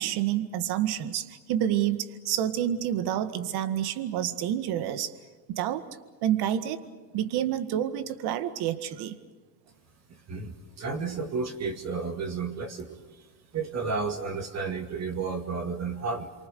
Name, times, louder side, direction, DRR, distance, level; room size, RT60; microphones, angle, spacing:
voice 1, 0.0-5.1 5.5-5.9 6.2-6.8 7.1-9.2, right 11 dB, 55° right, 11 dB, 1.9 m, -28 dB
voice 2, 10.1-13.0 13.5-16.3, right 4 dB, 35° right, 5 dB, 2.3 m, -32 dB
28.0 x 24.5 x 6.8 m, 1.3 s
supercardioid pair, 105°, 46 cm